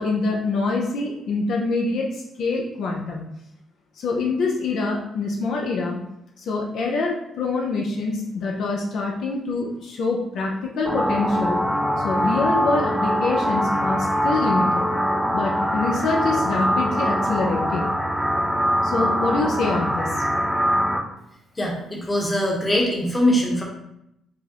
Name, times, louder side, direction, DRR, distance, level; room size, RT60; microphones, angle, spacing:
voice 1, 0.0-3.2 4.0-6.0 6.4-11.6 12.0-14.9 15.3-17.9 18.8-20.2, left 3 dB, 70° left, -1 dB, 0.5 m, -25 dB
sound 1, 10.9-21.0, equal, 5° right, 0.7 m, -23 dB
voice 2, 21.5-23.6, equal, 20° left, -2 dB, 0.9 m, -22 dB
4.6 x 2.0 x 2.9 m, 0.79 s
cardioid pair, 90°, 0 cm